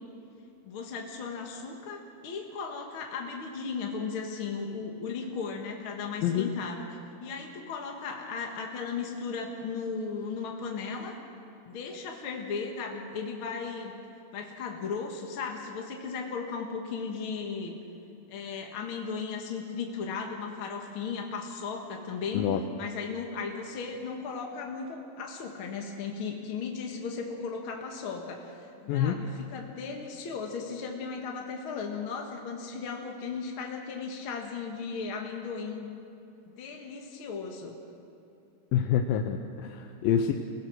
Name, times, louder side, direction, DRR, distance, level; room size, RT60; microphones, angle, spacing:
voice 1, 0.6-11.1 11.6-13.9 14.3-17.8 18.3-35.9 36.5-37.7, left 5 dB, 50° left, 1 dB, 1.6 m, -36 dB
voice 2, 28.9-29.2 38.7-40.3, left 9 dB, 75° left, 5 dB, 2.4 m, -27 dB
28.5 x 17.0 x 6.2 m, 2.7 s
omnidirectional pair, 4.5 m